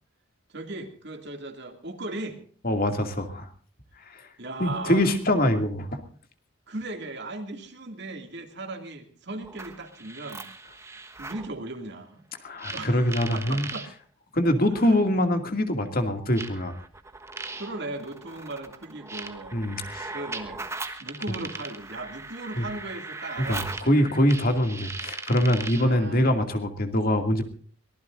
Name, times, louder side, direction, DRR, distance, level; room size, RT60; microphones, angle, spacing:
voice 1, 0.5-2.4 4.4-5.2 6.7-10.5 11.2-12.3 12.7-13.9 14.8-15.0 17.6-20.7 21.0-24.3 25.8-26.3, right 2 dB, 55° right, 5 dB, 2.4 m, -37 dB
voice 2, 2.6-3.5 4.1-4.3 4.6-6.0 12.4-13.7 14.3-16.7 19.5-20.1 22.6-22.7 23.5-27.4, left 1 dB, 45° left, 5 dB, 2.4 m, -24 dB
sound 1, 9.4-11.5 12.6-13.9 15.0-15.1 16.4-25.9, right 3 dB, 15° right, 1.3 m, -39 dB
23.5 x 19.0 x 2.6 m, 0.43 s
head